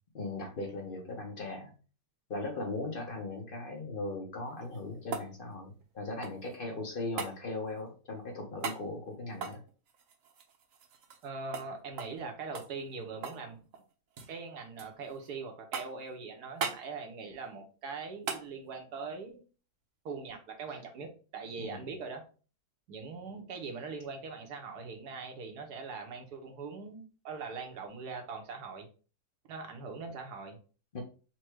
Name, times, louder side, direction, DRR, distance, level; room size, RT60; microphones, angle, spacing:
voice 1, 0.1-1.7 2.3-9.6 21.6-21.8 30.9-31.0, left 2 dB, 45° left, 2 dB, 0.8 m, -38 dB
sound 1, 4.5-6.6 7.2-7.4 8.6-8.8 9.3-11.3 11.5-11.7 12.0-12.2 12.5-13.5 13.7-14.3 14.8-15.3 15.7-16.1 16.6-16.8 18.3-18.5 20.8-20.9, right 5 dB, 65° right, 1.1 m, -39 dB
voice 2, 11.2-13.6 14.3-19.4 20.0-22.2 22.9-28.9 29.5-30.6, right 4 dB, 80° right, 4 dB, 1.5 m, -42 dB
4.4 x 2.3 x 4.5 m, 0.37 s
omnidirectional pair, 1.7 m